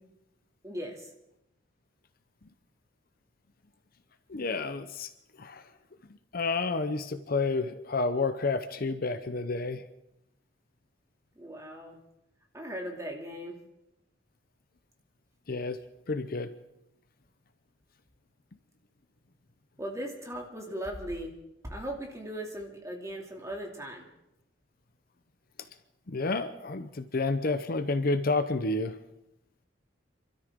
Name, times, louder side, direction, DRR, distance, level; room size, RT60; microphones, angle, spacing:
voice 1, 0.6-1.1 11.4-12.0 12.5-13.6 19.8-21.3 21.6-24.0, equal, 15° right, 0 dB, 2.5 m, -38 dB
voice 2, 4.3-5.1 5.4-5.6 6.3-9.8 15.5-15.8 16.1-16.5 26.1-29.0, left 3 dB, 50° left, 10 dB, 0.8 m, -30 dB
28.0 x 13.0 x 3.7 m, 0.89 s
head